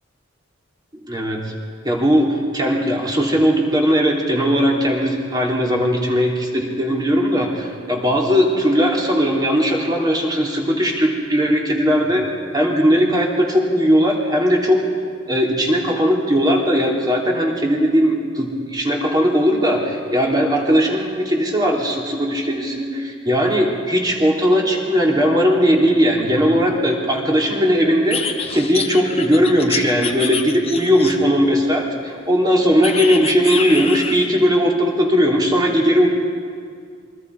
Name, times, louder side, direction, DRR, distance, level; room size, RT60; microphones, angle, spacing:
voice 1, 1.0-1.4 1.8-12.3 12.5-14.9 15.3-36.1, equal, 20° right, -2 dB, 3.4 m, -18 dB
sound 1, 28.1-31.4 32.8-34.3, left 6 dB, 30° left, 1.3 m, -27 dB
27.5 x 23.5 x 4.9 m, 2.2 s
head